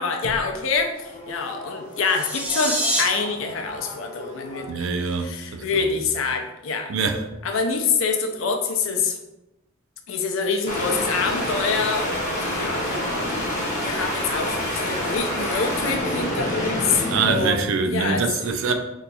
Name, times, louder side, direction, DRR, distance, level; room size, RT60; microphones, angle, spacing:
voice 1, 0.0-4.9 5.2-6.9 7.4-9.2 10.1-13.1 13.8-18.3 18.7-18.8, left 4 dB, 70° left, 0.5 m, -26 dB
sound 1, 0.9-4.7 10.7-17.5, left 1 dB, 35° left, 0.9 m, -28 dB
sound 2, 2.0-3.0, right 1 dB, 5° right, 0.5 m, -25 dB
voice 2, 4.7-5.6 6.9-7.2 17.1-18.7, right 5 dB, 70° right, 0.4 m, -24 dB
2.8 x 2.3 x 4.0 m
head